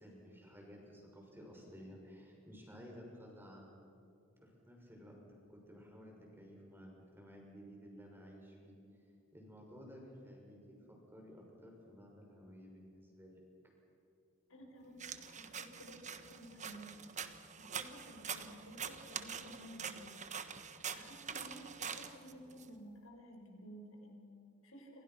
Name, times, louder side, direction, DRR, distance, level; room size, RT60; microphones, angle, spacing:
voice 1, 0.0-3.8 4.4-5.1 5.5-8.8 9.3-10.6 10.9-13.4, equal, 10° right, -1 dB, 6.4 m, -54 dB
voice 2, 14.5-17.1 17.6-20.1 20.4-25.0, equal, 75° left, 2 dB, 5.6 m, -54 dB
sound 1, 15.0-22.7, right 7 dB, 35° right, 1.3 m, -45 dB
28.5 x 27.0 x 6.1 m, 2.7 s
head